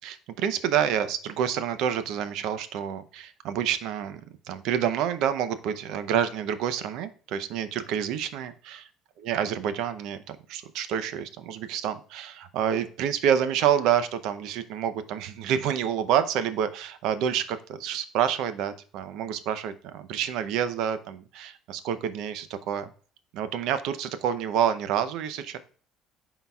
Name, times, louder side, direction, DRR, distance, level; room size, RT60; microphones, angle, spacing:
voice 1, 0.0-4.2 4.5-8.9 9.2-22.9 23.3-25.6, right 9 dB, 75° right, 12 dB, 0.6 m, -28 dB
11.0 x 3.9 x 2.3 m, 0.43 s
cardioid pair, 110°, 0 cm